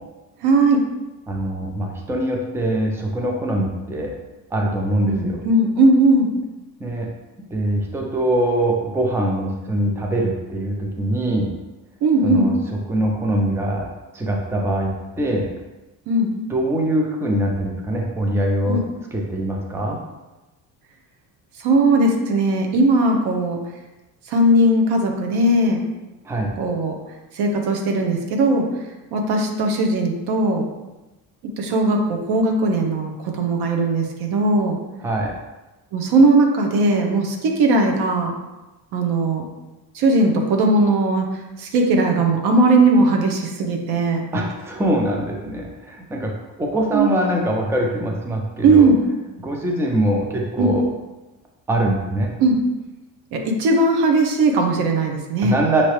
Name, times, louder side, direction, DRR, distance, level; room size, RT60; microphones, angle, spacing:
voice 1, 0.4-0.8 5.1-6.3 12.0-12.5 16.1-16.3 18.7-18.8 21.6-23.6 24.3-25.8 26.6-26.9 27.3-28.7 29.1-30.7 31.6-34.8 35.9-38.3 38.9-39.5 39.9-44.2 46.9-47.1 48.6-49.0 50.6-50.8 52.4-52.6 53.3-55.6, right 2 dB, 80° right, 2 dB, 0.9 m, -18 dB
voice 2, 1.3-4.1 4.5-5.4 6.8-7.1 7.5-11.5 12.2-12.6 12.9-13.9 14.1-15.5 16.5-18.8 19.1-20.0 26.2-26.5 35.0-35.4 44.3-46.3 46.6-48.9 49.4-50.9 51.7-52.3 55.4-55.8, right 1 dB, 5° right, 0 dB, 0.5 m, -23 dB
5.8 x 2.7 x 3.1 m, 1.1 s
cardioid pair, 135°, 38 cm